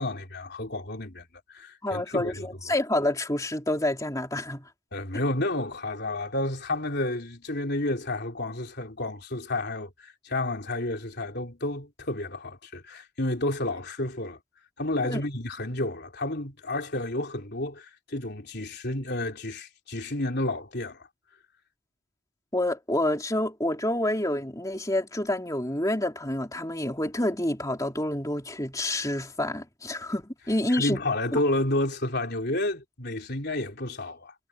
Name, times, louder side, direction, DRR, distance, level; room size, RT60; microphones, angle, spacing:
voice 1, 0.0-2.5 4.9-14.4 14.8-21.1 30.7-34.3, left 1 dB, 50° left, 3.7 m, -31 dB
voice 2, 1.8-4.7 15.0-15.2 22.5-31.0 31.3-31.4, left 1 dB, 15° left, 3.5 m, -28 dB
head